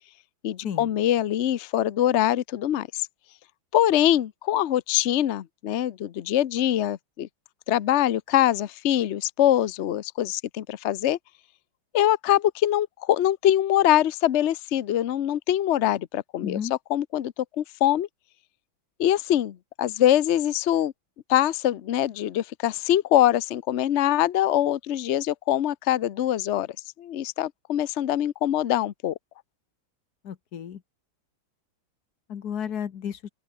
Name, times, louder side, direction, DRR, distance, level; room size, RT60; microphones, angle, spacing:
voice 1, 0.4-3.1 3.7-7.3 7.7-11.2 11.9-18.1 19.0-20.9 21.3-26.7 27.0-29.1, left 12 dB, 85° left, 0.6 m, -23 dB
voice 2, 16.4-16.7 30.2-30.8 32.3-33.2, left 8 dB, 55° left, 1.7 m, -32 dB
open air
omnidirectional pair, 2.2 m